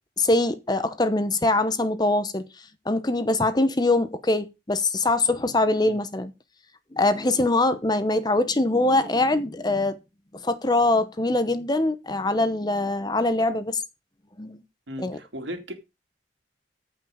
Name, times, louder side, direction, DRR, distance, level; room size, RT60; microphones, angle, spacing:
voice 1, 0.2-2.4 2.9-6.3 6.9-10.0 10.3-13.8 14.4-14.6 15.0-15.2, left 2 dB, 20° left, 0.9 m, -23 dB
voice 2, 14.9-15.7, equal, 90° right, 2.5 m, -36 dB
14.5 x 5.5 x 5.0 m
head